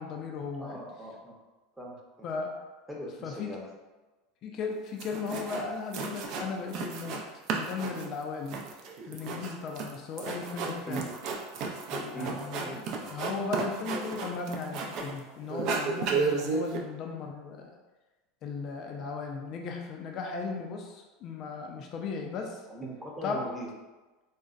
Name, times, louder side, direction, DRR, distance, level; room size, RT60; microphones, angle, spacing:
voice 1, 0.0-0.8 2.2-2.5 3.2-3.6 4.4-7.2 7.5-8.7 9.1-11.1 11.9-17.7 18.4-22.6 23.2-23.5, left 4 dB, 45° left, 2 dB, 0.4 m, -36 dB
voice 2, 0.6-1.3 1.8-2.3 2.9-3.7 10.9-11.1 12.1-12.8 22.7-23.7, right 2 dB, 5° right, -3 dB, 0.7 m, -40 dB
sound 1, 4.7-4.8 5.0-5.7 5.9-7.2 7.5-15.2 15.5-16.8, right 4 dB, 55° right, 0.4 m, -33 dB
3.9 x 2.1 x 2.4 m, 1.2 s
supercardioid pair, 115°, 0 cm